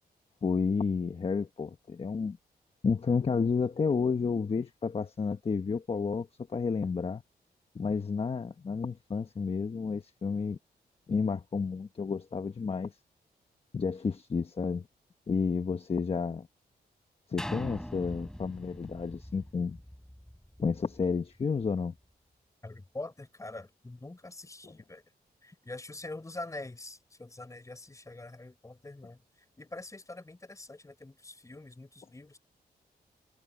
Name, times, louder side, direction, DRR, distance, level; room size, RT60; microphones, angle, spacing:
voice 1, 0.4-2.4 2.8-7.2 7.7-10.6 11.1-13.0 13.7-14.9 15.3-16.5 17.3-19.8 20.6-21.9 24.6-24.7, left 5 dB, 35° left, 1.2 m, -31 dB
sound 1, 17.4-21.2 21.7-21.8, equal, 5° left, 6.8 m, -42 dB
voice 2, 22.6-25.0 25.4-29.2 29.6-32.4, left 2 dB, 20° left, 4.7 m, -44 dB
cardioid pair, 100°, 17 cm